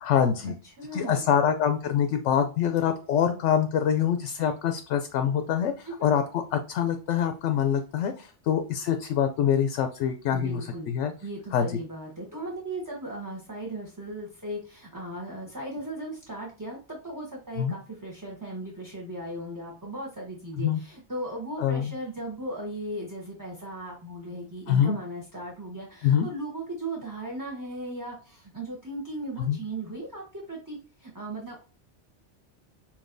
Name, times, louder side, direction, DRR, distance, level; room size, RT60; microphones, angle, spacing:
voice 1, 0.0-0.5 0.9-11.1 11.5-11.8 17.6-17.8 20.6-20.8 21.6-21.9 24.7-25.0 26.0-26.3 29.4-29.6, left 8 dB, 80° left, 6 dB, 0.9 m, -25 dB
voice 2, 0.6-1.3 5.8-6.1 10.3-10.9 11.2-31.6, right 1 dB, 20° right, -3 dB, 1.0 m, -37 dB
6.9 x 2.9 x 2.6 m, 0.37 s
omnidirectional pair, 1.2 m